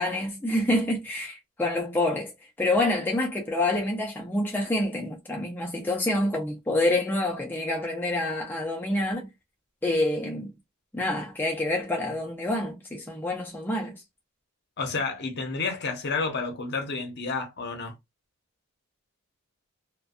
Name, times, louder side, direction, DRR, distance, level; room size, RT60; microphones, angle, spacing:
voice 1, 0.0-2.3 2.6-9.3 9.8-10.5 10.9-13.9, left 1 dB, 10° left, 0.5 m, -27 dB
voice 2, 14.8-17.9, left 4 dB, 50° left, 0.8 m, -30 dB
2.5 x 2.2 x 2.3 m
head